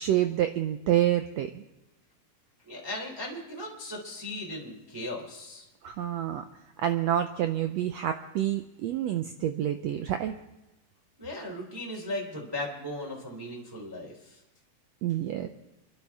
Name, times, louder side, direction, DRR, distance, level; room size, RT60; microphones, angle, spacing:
voice 1, 0.0-1.6 5.8-6.4 6.8-10.3 15.0-15.5, right 11 dB, 85° right, 7 dB, 1.5 m, -28 dB
voice 2, 2.7-5.7 11.2-14.4, left 1 dB, 5° right, -3 dB, 2.6 m, -37 dB
30.0 x 11.5 x 3.5 m, 1.0 s
omnidirectional pair, 3.8 m